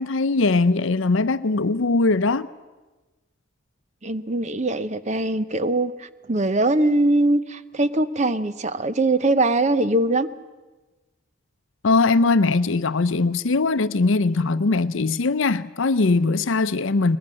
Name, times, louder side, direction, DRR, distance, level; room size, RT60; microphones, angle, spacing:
voice 1, 0.0-2.5 11.8-17.2, left 3 dB, 70° left, 0.6 m, -20 dB
voice 2, 4.0-10.3, right 2 dB, 35° right, 0.7 m, -22 dB
22.0 x 21.0 x 7.5 m
head